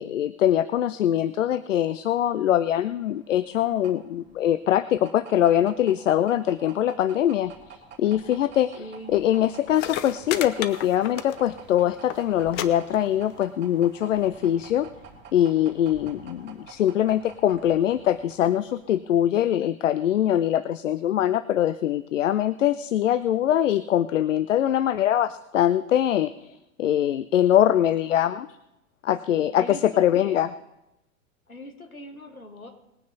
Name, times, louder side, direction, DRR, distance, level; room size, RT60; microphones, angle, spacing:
voice 1, 0.0-7.5 8.0-8.8 9.1-14.9 15.3-26.5 26.8-28.5 29.0-30.5, left 11 dB, 65° left, 15 dB, 0.6 m, -23 dB
sound 1, 3.1-19.1, right 5 dB, 25° right, 2.2 m, -48 dB
voice 2, 8.8-9.2 29.3-30.4 31.5-32.7, left 1 dB, 85° left, 4 dB, 2.0 m, -41 dB
sound 2, 9.4-9.5 9.7-11.7 11.9-12.2 12.5-12.7 12.9-13.4 14.3-14.4, left 11 dB, 25° left, 0.7 m, -32 dB
20.0 x 9.3 x 4.0 m, 0.93 s
figure-of-eight pair, 95°, 41 cm